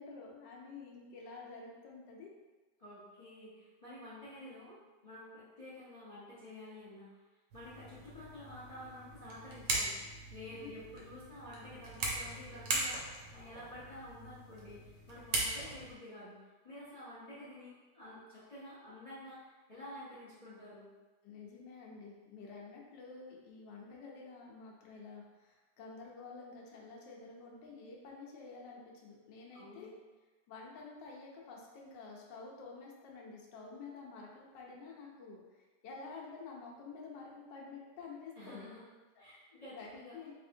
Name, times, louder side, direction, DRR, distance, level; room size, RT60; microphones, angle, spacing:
voice 1, 0.0-2.3 10.5-10.7 21.2-29.9 30.5-38.7 39.7-40.3, left 4 dB, 85° left, -2 dB, 1.4 m, -50 dB
voice 2, 2.8-4.7 5.0-7.2 7.5-20.9 29.5-29.9 38.4-38.8 39.2-40.1, left 1 dB, 30° left, -11 dB, 0.8 m, -50 dB
sound 1, 7.5-15.9, right 2 dB, 85° right, 1.4 m, -40 dB
3.4 x 3.4 x 2.6 m, 1.2 s
omnidirectional pair, 1.9 m